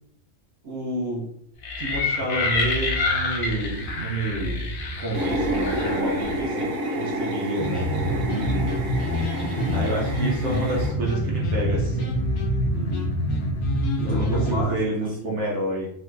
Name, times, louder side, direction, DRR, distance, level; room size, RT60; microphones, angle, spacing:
voice 1, 0.6-1.3 1.8-4.7 5.0-7.8 9.7-12.2 14.0-15.9, right 1 dB, 65° right, -2 dB, 1.0 m, -29 dB
sound 1, 1.6-6.4, left 3 dB, 55° left, 0.7 m, -28 dB
sound 2, 5.1-10.9, right 1 dB, 90° right, 1.1 m, -29 dB
sound 3, 7.6-14.6, equal, 85° left, 1.1 m, -25 dB
voice 2, 8.3-8.7 9.4-9.9 12.7-13.1 14.0-15.4, equal, 40° right, -9 dB, 1.1 m, -33 dB
3.0 x 2.4 x 3.2 m, 0.69 s
omnidirectional pair, 1.3 m